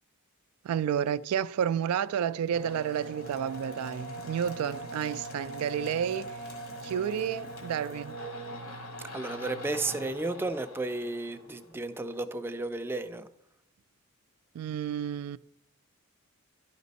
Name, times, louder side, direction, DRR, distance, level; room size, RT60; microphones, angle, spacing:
voice 1, 0.6-6.4 6.8-8.2 14.5-15.4, right 8 dB, 90° right, 0.3 m, -31 dB
sound 1, 2.5-12.0, right 1 dB, 75° left, 1.7 m, -42 dB
voice 2, 9.1-13.3, right 2 dB, 10° right, 0.4 m, -33 dB
11.0 x 5.2 x 4.1 m
head